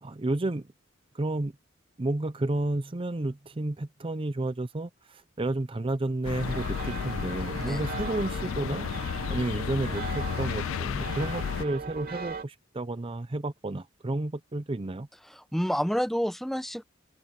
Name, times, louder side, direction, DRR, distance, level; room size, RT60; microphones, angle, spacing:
voice 1, 0.0-0.7 1.1-1.5 2.0-15.1, right 2 dB, 25° right, 0.6 m, -31 dB
sound 1, 6.2-11.7, left 7 dB, 85° left, 0.3 m, -33 dB
sound 2, 6.4-12.4, right 4 dB, 50° right, 2.6 m, -39 dB
voice 2, 15.3-16.8, equal, ahead, 0.8 m, -29 dB
open air
head